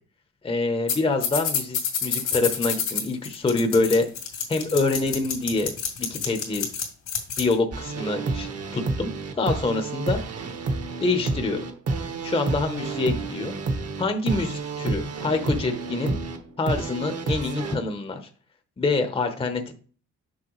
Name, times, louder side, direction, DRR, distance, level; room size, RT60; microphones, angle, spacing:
voice 1, 0.4-4.1 4.5-5.7 6.0-6.7 7.4-9.1 9.4-10.2 11.0-11.6 12.2-13.5 14.0-16.2 16.6-18.2 18.8-19.7, left 3 dB, 20° left, 6 dB, 0.8 m, -26 dB
sound 1, 0.9-1.0 1.2-7.5, left 7 dB, 80° left, 2.3 m, -28 dB
sound 2, 7.7-17.8, right 3 dB, 55° right, 1.1 m, -30 dB
6.3 x 5.5 x 3.1 m, 0.42 s
cardioid pair, 90°, 30 cm